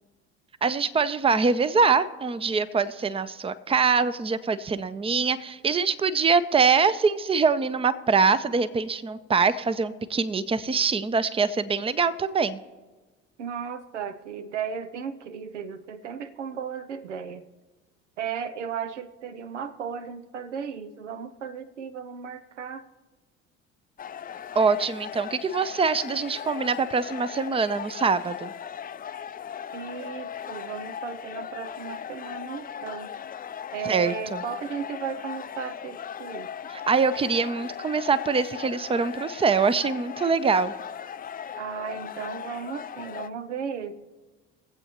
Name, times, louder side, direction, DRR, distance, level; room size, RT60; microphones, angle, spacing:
voice 1, 0.6-12.6 24.5-28.5 33.9-34.4 36.7-40.7, right 5 dB, 15° right, 15 dB, 0.6 m, -24 dB
voice 2, 13.4-17.5 18.2-22.9 29.7-33.1 33.7-36.5 41.6-43.9, right 7 dB, 90° right, 11 dB, 0.6 m, -35 dB
sound 1, 24.0-43.3, left 8 dB, 25° left, 0.5 m, -38 dB
23.0 x 8.0 x 3.0 m, 1.3 s
hypercardioid pair, 60°, 35 cm